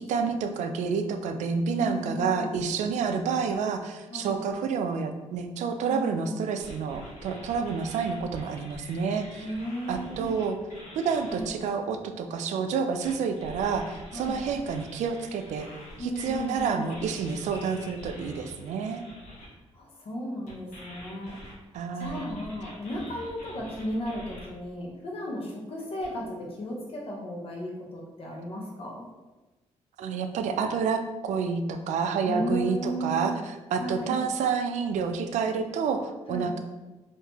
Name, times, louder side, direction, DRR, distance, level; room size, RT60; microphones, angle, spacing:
voice 1, 0.1-9.4 9.9-10.6 10.9-15.7 16.0-19.0 21.7-22.2 30.0-36.6, right 5 dB, 85° right, 7 dB, 0.4 m, -29 dB
voice 2, 1.7-2.5 4.1-4.4 5.9-6.5 9.4-10.3 11.3-11.6 14.1-14.4 16.0-16.9 19.7-21.4 21.9-29.0 32.2-33.4 33.8-34.2 36.3-36.6, equal, 55° left, -2 dB, 0.9 m, -34 dB
sound 1, 6.6-11.5 13.0-19.5 20.5-24.5 26.0-26.1, equal, 80° left, 1.0 m, -46 dB
3.5 x 2.7 x 2.8 m, 1.2 s
cardioid pair, 105°, 12 cm